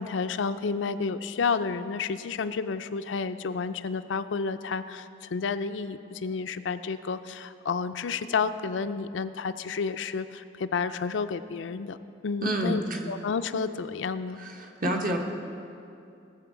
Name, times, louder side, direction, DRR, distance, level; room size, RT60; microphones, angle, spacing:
voice 1, 0.0-12.0 12.2-12.8 13.1-14.4, left 5 dB, 80° left, 11 dB, 0.5 m, -30 dB
voice 2, 12.4-13.0 14.4-15.2, right 1 dB, 50° right, 2 dB, 1.3 m, -29 dB
19.0 x 7.1 x 4.6 m, 2.6 s
head